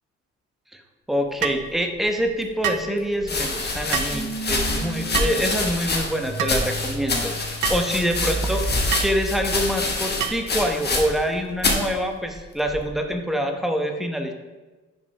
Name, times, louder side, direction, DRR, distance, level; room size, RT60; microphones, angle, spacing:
voice 1, 1.1-8.6 9.0-14.3, equal, ahead, 4 dB, 0.9 m, -25 dB
sound 1, 1.4-1.6 2.6-2.9 3.9-4.2 5.1-5.4 6.4-6.6 7.6-7.9 8.9-9.1 10.2-10.5, right 9 dB, 85° right, 0.6 m, -27 dB
sound 2, 2.1-10.0, right 2 dB, 40° right, 1.3 m, -34 dB
sound 3, 2.2-2.3 3.2-11.3 11.6-11.9 12.7-13.1, left 2 dB, 35° left, 1.4 m, -26 dB
5.4 x 5.3 x 5.3 m, 1.2 s
cardioid pair, 90°, 30 cm